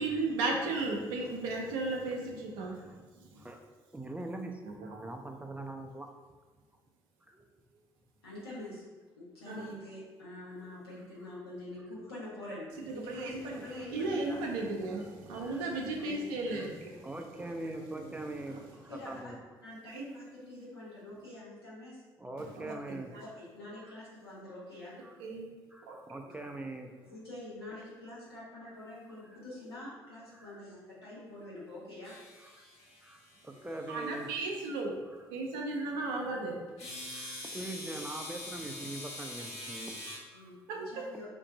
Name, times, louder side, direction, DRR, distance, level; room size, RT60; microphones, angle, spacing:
voice 1, 0.0-3.0 3.3-3.4 4.6-5.0 9.5-9.7 13.1-13.6 13.9-17.0 18.5-18.6 19.9-20.0 22.6-23.2 25.2-25.5 25.9-26.2 33.9-35.0 35.3-36.6 40.7-40.9, right 3 dB, 70° right, 1 dB, 0.5 m, -35 dB
voice 2, 3.9-6.1 7.3-7.5 14.0-14.1 14.9-15.1 15.3-15.7 16.0-16.1 16.5-16.7 17.0-19.4 22.2-23.1 23.8-24.0 25.0-25.2 25.7-26.9 29.2-29.4 30.3-30.6 32.4-32.7 33.0-34.3 35.0-35.3 36.1-36.4 37.1-40.3, right 2 dB, 10° right, 3 dB, 0.4 m, -43 dB
voice 3, 8.2-8.8 9.2-14.4 16.5-16.7 18.9-19.3 19.6-22.0 23.2-25.0 26.2-26.3 27.0-32.1 40.3-40.6 40.8-41.3, left 1 dB, 85° left, -9 dB, 1.0 m, -45 dB
sound 1, 32.0-34.7 36.8-40.2, left 1 dB, 55° left, 1.0 m, -44 dB
2.6 x 2.5 x 4.0 m, 1.3 s
figure-of-eight pair, 45°, 13 cm